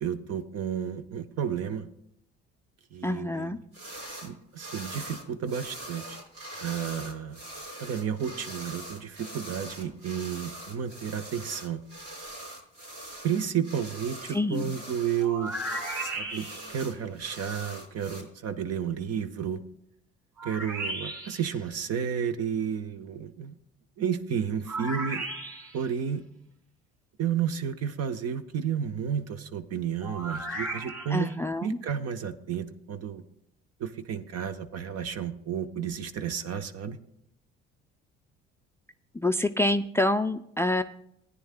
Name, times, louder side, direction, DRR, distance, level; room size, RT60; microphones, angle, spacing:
voice 1, 0.0-1.9 2.9-3.5 4.2-6.2 6.6-7.4 7.8-11.8 13.2-15.5 16.0-19.6 20.4-23.5 24.0-25.3 25.7-26.2 27.2-31.3 31.6-33.2 33.8-37.0, right 8 dB, 55° right, 10 dB, 0.9 m, -32 dB
voice 2, 3.0-3.6 14.3-14.8 31.1-31.8 39.1-40.8, left 1 dB, 10° left, 10 dB, 0.4 m, -27 dB
sound 1, 3.7-4.3 4.6-18.2, right 1 dB, 70° right, 4.2 m, -42 dB
sound 2, 15.2-16.8 20.4-21.5 24.7-25.9 30.0-31.3, right 2 dB, 10° right, 2.3 m, -35 dB
18.0 x 9.7 x 2.2 m, 0.75 s
hypercardioid pair, 65°, 30 cm